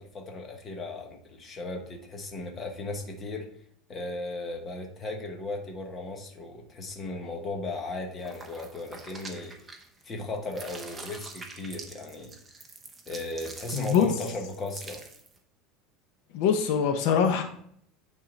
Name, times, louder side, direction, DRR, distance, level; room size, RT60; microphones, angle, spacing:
voice 1, 0.0-3.5 3.9-9.5 10.0-12.3 13.1-15.0, left 2 dB, 20° left, 2 dB, 1.1 m, -36 dB
sound 1, 8.2-10.1 10.4-15.4, right 3 dB, 10° right, 0.8 m, -45 dB
voice 2, 13.7-14.1 16.3-17.4, left 7 dB, 60° left, 5 dB, 0.8 m, -23 dB
9.1 x 3.7 x 5.2 m, 0.68 s
cardioid pair, 180°, 0 cm